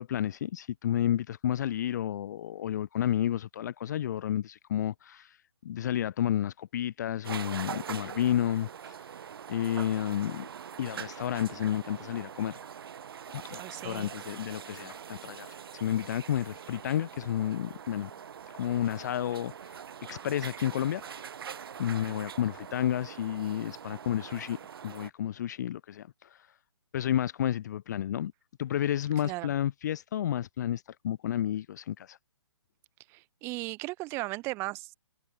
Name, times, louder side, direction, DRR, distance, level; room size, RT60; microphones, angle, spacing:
voice 1, 0.0-5.4 5.6-9.0 9.5-10.5 10.8-12.6 13.3-18.1 18.6-19.8 20.1-21.3 21.8-24.6 24.8-26.5 26.9-28.3 28.6-32.2, left 11 dB, 40° left, 0.6 m, -31 dB
sound 1, 7.2-25.1, right 8 dB, 55° right, 6.3 m, -43 dB
voice 2, 13.5-14.1 29.2-29.5 33.1-34.9, right 22 dB, 15° right, 0.7 m, -36 dB
hypercardioid pair, 150°, 15 cm